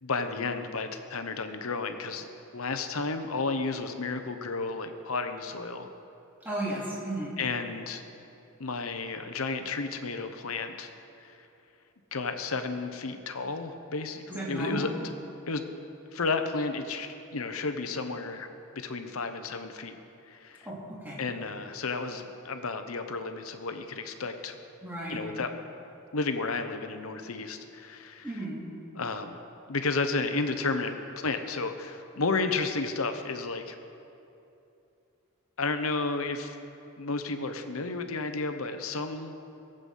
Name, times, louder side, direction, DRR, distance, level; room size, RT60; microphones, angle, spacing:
voice 1, 0.0-2.3 2.5-5.9 7.4-8.0 8.6-10.9 11.2-11.4 12.1-15.1 15.5-15.7 16.1-18.5 18.7-20.0 20.3-20.7 21.2-24.6 25.1-25.6 26.1-28.3 28.9-29.4 29.7-30.9 31.2-33.7 35.6-36.6 37.0-39.3, left 3 dB, 80° left, 7 dB, 0.9 m, -32 dB
voice 2, 6.4-7.3 14.3-14.9 20.6-21.2 24.8-25.2 28.2-28.6, right 1 dB, 10° right, -6 dB, 2.9 m, -34 dB
19.0 x 8.0 x 5.6 m, 2.8 s
head